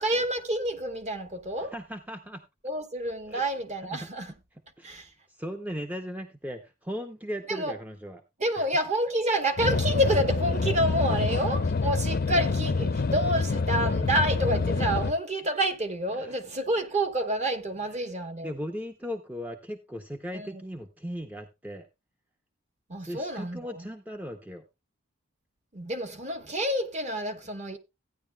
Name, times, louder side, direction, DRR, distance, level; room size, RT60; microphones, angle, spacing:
voice 1, 0.0-1.7 2.6-4.3 4.8-5.1 7.5-7.7 8.4-18.5 20.3-20.6 22.9-23.9 25.7-27.8, right 1 dB, 35° right, 1.1 m, -28 dB
voice 2, 1.6-2.4 3.3-3.5 3.8-4.1 4.8-8.2 8.6-8.7 11.1-11.2 14.0-14.1 16.1-16.4 18.4-21.9 23.0-24.6, equal, 10° right, 0.6 m, -38 dB
sound 1, 9.6-15.1, left 3 dB, 45° left, 0.5 m, -27 dB
15.0 x 9.7 x 2.2 m
head